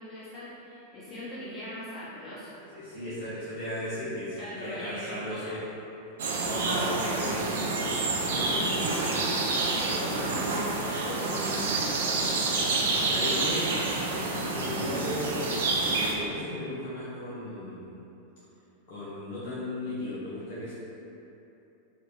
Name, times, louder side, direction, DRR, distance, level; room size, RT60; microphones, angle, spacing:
voice 1, 0.0-2.6 4.4-5.6 6.5-7.4 9.7-12.0, left 1 dB, 15° left, -13 dB, 1.4 m, -40 dB
voice 2, 2.7-5.6 6.4-8.1 8.3-9.2 13.1-13.7 14.3-18.0 18.9-20.7, left 1 dB, 50° left, -10 dB, 0.7 m, -36 dB
sound 1, 6.2-16.1, right 3 dB, 60° right, 0.4 m, -28 dB
3.2 x 2.5 x 3.0 m, 3.0 s
figure-of-eight pair, 90°, 0 cm